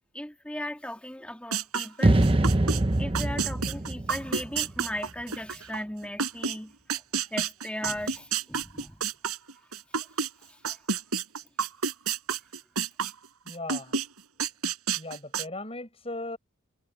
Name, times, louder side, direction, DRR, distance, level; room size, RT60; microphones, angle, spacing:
voice 1, 0.1-2.4 3.0-6.7 7.3-9.0 10.5-10.8, left 1 dB, 5° left, 2.5 m, -37 dB
sound 1, 1.5-2.8 3.1-6.6 6.9-10.3 10.6-13.2 13.5-14.1 14.4-15.5, right 6 dB, 90° right, 5.1 m, -29 dB
sound 2, 2.0-5.2, right 1 dB, 25° right, 0.7 m, -24 dB
voice 2, 13.5-14.0 15.0-16.4, left 2 dB, 25° left, 7.0 m, -37 dB
head